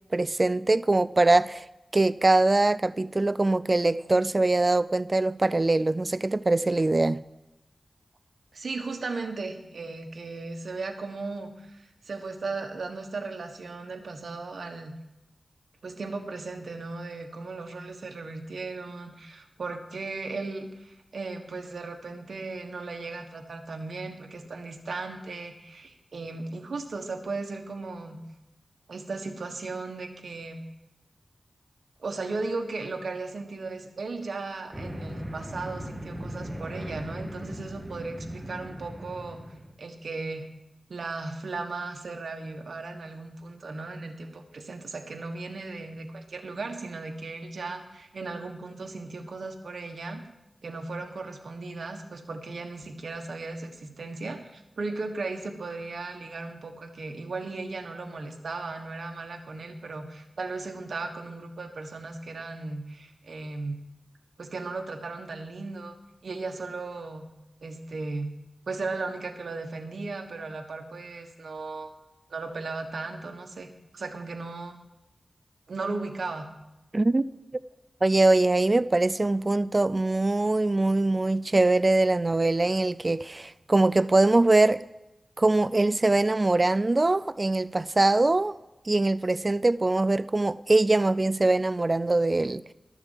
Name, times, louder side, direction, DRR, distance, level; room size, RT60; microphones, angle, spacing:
voice 1, 0.1-1.6 1.9-7.2 76.9-77.2 78.0-84.8 85.4-88.6 88.9-92.6, right 2 dB, 35° right, 0.4 m, -22 dB
voice 2, 8.5-15.0 15.8-28.2 28.9-30.6 32.0-39.4 39.8-40.5 40.9-50.2 50.6-63.8 64.4-66.0 66.2-67.3 67.6-68.3 68.7-71.9 72.3-73.7 73.9-74.8 75.7-76.5, right 3 dB, 75° right, 1.4 m, -36 dB
sound 1, 34.7-39.7, equal, 10° right, 1.9 m, -38 dB
12.5 x 7.0 x 7.3 m
cardioid pair, 60°, 0 cm